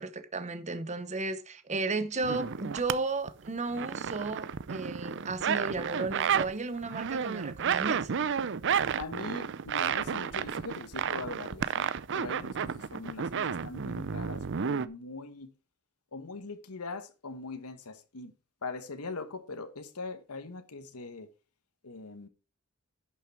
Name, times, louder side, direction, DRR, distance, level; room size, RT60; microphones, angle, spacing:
voice 1, 0.0-8.1, right 3 dB, 30° right, 1.0 m, -34 dB
sound 1, 2.2-2.9 3.3-6.5 6.8-14.9, right 7 dB, 55° right, 0.6 m, -31 dB
voice 2, 9.0-15.5 16.1-18.3 18.6-21.3 21.8-22.3, left 3 dB, 80° left, 1.2 m, -41 dB
11.0 x 6.6 x 4.6 m
head